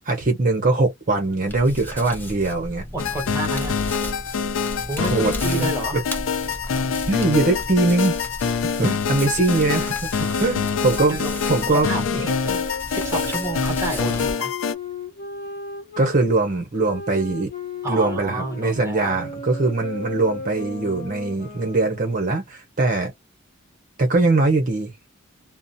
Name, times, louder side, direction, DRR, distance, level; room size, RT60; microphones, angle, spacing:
voice 1, 0.1-2.8 5.0-6.0 7.1-8.1 8.8-11.2 11.5-11.9 16.0-17.5 17.9-23.1 24.0-24.9, right 2 dB, 40° right, 0.7 m, -21 dB
Hands, 1.5-14.3, left 1 dB, 10° left, 0.6 m, -35 dB
voice 2, 2.9-3.8 4.9-6.0 10.1-10.4 11.0-11.4 11.7-14.5 17.8-19.2, right 2 dB, 15° right, 0.9 m, -30 dB
sound 1, 3.0-14.7, left 6 dB, 70° left, 0.4 m, -25 dB
sound 2, 10.6-16.2 16.8-22.3, left 2 dB, 45° left, 0.7 m, -36 dB
2.5 x 2.0 x 2.6 m
head